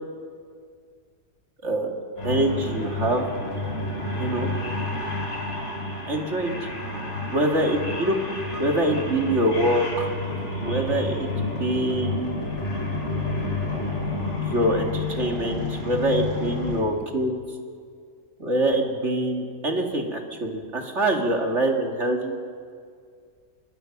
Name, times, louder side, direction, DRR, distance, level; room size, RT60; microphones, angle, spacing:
sound 1, 2.2-16.8, left 2 dB, 40° left, 4.6 m, -30 dB
voice 1, 2.2-3.3 4.2-4.5 6.1-6.5 7.3-8.2 8.6-10.1 10.6-12.4 14.4-17.4 18.4-22.4, right 1 dB, 45° right, 2 dB, 2.5 m, -24 dB
26.5 x 22.0 x 6.0 m, 2.1 s
omnidirectional pair, 1.8 m